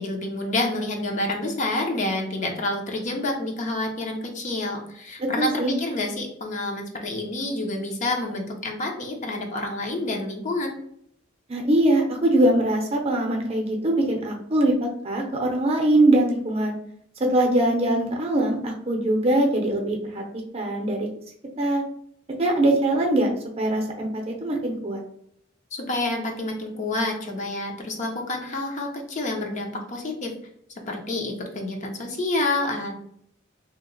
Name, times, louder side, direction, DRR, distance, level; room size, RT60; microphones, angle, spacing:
voice 1, 0.0-10.7 25.7-30.3 30.9-33.0, left 2 dB, 40° left, 2 dB, 0.5 m, -28 dB
voice 2, 5.2-5.7 11.5-16.8 17.2-20.2 20.5-21.1 21.6-21.8 22.4-23.3 23.6-25.0, right 1 dB, 30° right, 1 dB, 0.6 m, -22 dB
2.8 x 2.1 x 3.8 m, 0.70 s
head